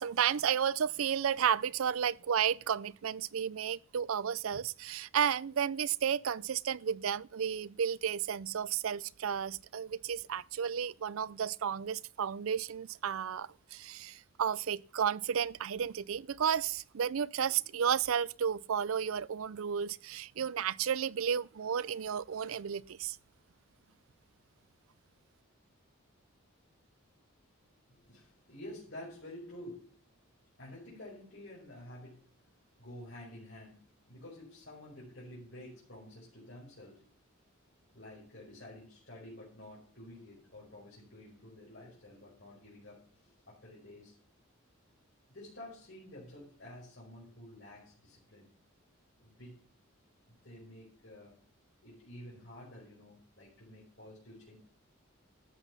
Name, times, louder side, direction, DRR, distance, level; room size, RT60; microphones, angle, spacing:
voice 1, 0.0-23.2, right 8 dB, 75° right, 0.5 m, -32 dB
voice 2, 27.9-30.0 30.6-32.3 32.8-37.1 37.9-44.1 45.3-48.5 49.2-49.6 50.3-51.4 51.8-54.6, left 1 dB, 55° left, 5.4 m, -50 dB
13.0 x 8.2 x 5.4 m
head